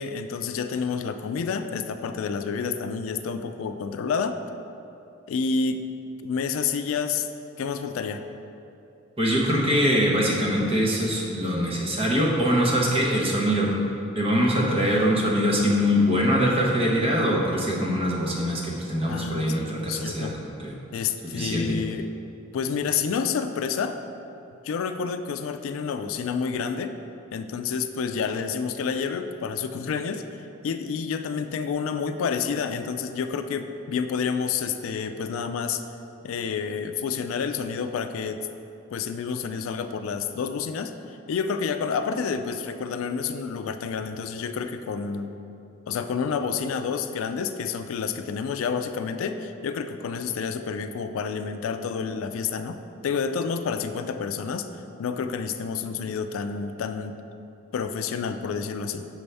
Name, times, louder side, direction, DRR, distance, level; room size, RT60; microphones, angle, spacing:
voice 1, 0.0-4.4 5.3-5.8 6.2-7.3 7.6-8.2 19.0-20.3 20.9-22.1 22.5-24.0 24.6-26.9 27.3-35.8 36.2-38.5 38.9-45.3 45.9-52.8 53.0-54.7 55.0-57.2 57.7-59.1, left 6 dB, 80° left, 8 dB, 0.3 m, -29 dB
voice 2, 9.2-13.7 14.1-20.3 20.6-20.7 21.3-21.8, equal, 30° right, -3 dB, 0.9 m, -23 dB
6.1 x 5.4 x 3.4 m, 2.8 s
head